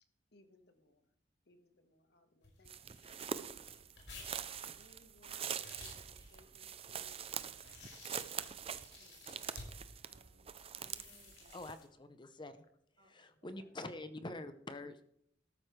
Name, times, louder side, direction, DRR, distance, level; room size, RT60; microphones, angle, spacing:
voice 1, 0.3-1.1 1.4-4.2 4.7-7.4 8.7-9.9 13.6-13.8, left 2 dB, 60° left, 7 dB, 1.5 m, -68 dB
sound 1, 2.4-10.0 10.7-11.9, left 3 dB, 85° left, 5.7 m, -55 dB
sound 2, 2.7-11.7, right 7 dB, 30° right, 0.5 m, -44 dB
voice 2, 10.0-11.6 13.0-13.7, right 1 dB, 75° right, -1 dB, 3.8 m, -67 dB
voice 3, 11.5-12.6 13.1-15.0, left 2 dB, 25° left, 11 dB, 0.7 m, -46 dB
13.5 x 12.5 x 3.3 m, 0.70 s
head